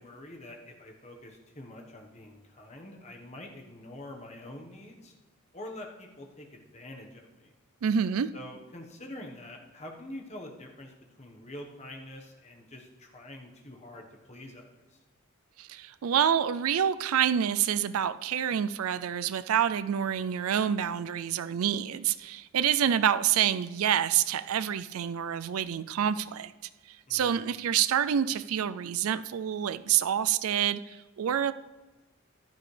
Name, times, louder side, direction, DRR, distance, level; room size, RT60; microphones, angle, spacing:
voice 1, 0.0-5.1 5.5-7.5 8.3-15.0 27.1-27.4, left 1 dB, 30° left, 1 dB, 1.2 m, -46 dB
voice 2, 7.8-8.3 15.6-26.5 26.9-31.5, right 9 dB, 80° right, 14 dB, 0.4 m, -27 dB
14.5 x 11.5 x 3.3 m, 1.2 s
head